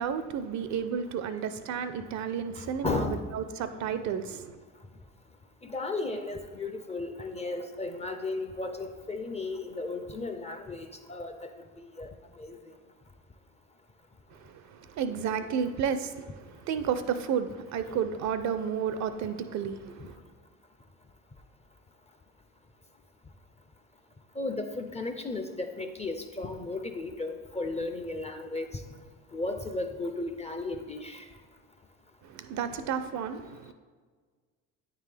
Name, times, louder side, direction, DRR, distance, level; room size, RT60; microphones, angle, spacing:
voice 1, 0.0-4.6 14.3-20.2 32.2-33.7, right 7 dB, 45° right, 11 dB, 0.4 m, -32 dB
voice 2, 2.8-3.2 5.6-11.5 11.8-12.1 12.4-12.6 24.4-28.7 29.3-31.2, left 3 dB, 15° left, 7 dB, 0.4 m, -34 dB
8.8 x 3.7 x 3.3 m, 1.5 s
hypercardioid pair, 65°, 41 cm